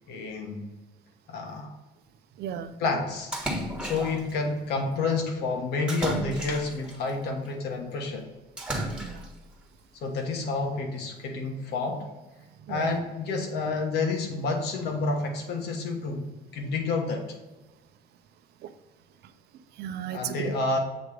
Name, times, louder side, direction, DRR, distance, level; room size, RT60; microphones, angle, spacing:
voice 1, 0.1-0.6 1.3-1.7 2.8-3.3 3.8-8.3 10.0-12.0 12.7-17.3 20.1-20.8, left 3 dB, 75° left, 2 dB, 1.4 m, -29 dB
voice 2, 2.4-2.8 3.9-4.1 9.0-9.3 12.6-13.0 18.6-18.7 19.2-19.3 19.7-20.5, right 9 dB, 70° right, 11 dB, 0.6 m, -36 dB
Splash splatter, 3.3-4.3 5.9-6.9 8.6-9.4, right 1 dB, 5° right, 1.3 m, -33 dB
7.8 x 3.2 x 5.0 m, 1.2 s
cardioid pair, 110°, 17 cm